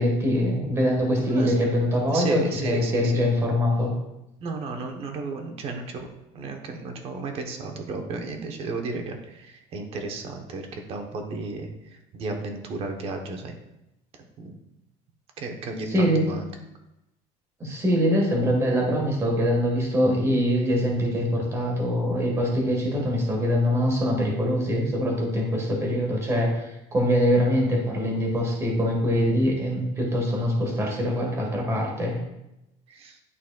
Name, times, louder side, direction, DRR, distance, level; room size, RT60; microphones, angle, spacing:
voice 1, 0.0-3.9 15.9-16.2 17.6-26.7 26.9-32.2, equal, 15° right, -1 dB, 1.4 m, -23 dB
voice 2, 1.2-1.7 2.1-3.3 4.4-6.1 6.3-13.5 14.4-14.6 15.4-16.5 32.9-33.2, right 3 dB, 35° right, 4 dB, 0.9 m, -33 dB
11.0 x 4.0 x 2.3 m, 0.89 s
cardioid pair, 170°, 17 cm